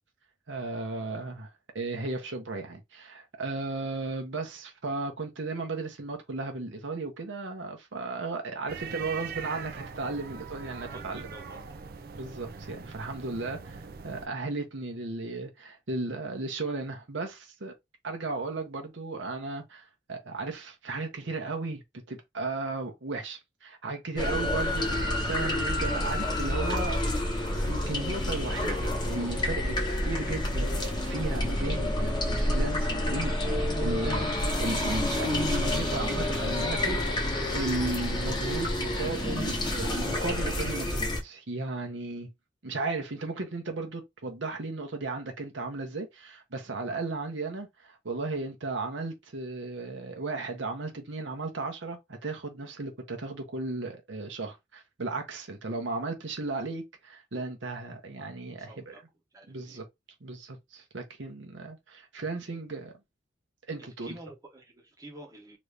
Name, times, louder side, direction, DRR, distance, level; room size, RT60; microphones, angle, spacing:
voice 1, 0.5-1.5 1.7-11.2 12.1-17.7 18.0-27.0 27.7-34.3 34.6-37.3 37.5-42.3 42.6-59.0 59.5-59.8 60.2-62.9 63.7-64.1, right 3 dB, 75° right, 0.9 m, -35 dB
sound 1, 8.7-14.3, right 6 dB, 50° right, 0.4 m, -42 dB
voice 2, 10.8-11.8 37.8-37.9 58.7-59.0 59.3-59.8 62.5-62.6 63.8-65.6, right 1 dB, 20° right, 0.9 m, -49 dB
sound 2, 24.1-41.2, left 1 dB, 25° left, 1.0 m, -29 dB
3.0 x 2.6 x 3.2 m
head